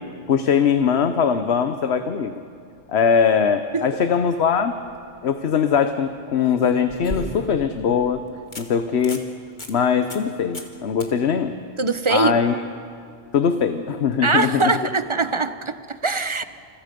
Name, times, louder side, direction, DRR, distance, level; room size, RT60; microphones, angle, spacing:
voice 1, 0.3-2.4 2.9-4.7 5.2-8.2 8.6-9.2 9.7-11.5 12.1-12.5 13.3-14.7, left 7 dB, 90° left, 8 dB, 1.2 m, -21 dB
sound 1, 4.7-5.0 6.4-7.7 8.1-8.2 8.5-8.7 9.0-9.3 9.6-9.7 10.1-10.3 10.5-10.7 11.0-11.1 14.2-14.3, left 1 dB, 50° left, 2.1 m, -35 dB
voice 2, 11.8-12.4 14.2-16.4, right 4 dB, 30° right, 11 dB, 0.8 m, -22 dB
28.5 x 28.5 x 5.2 m, 2.3 s
omnidirectional pair, 1.1 m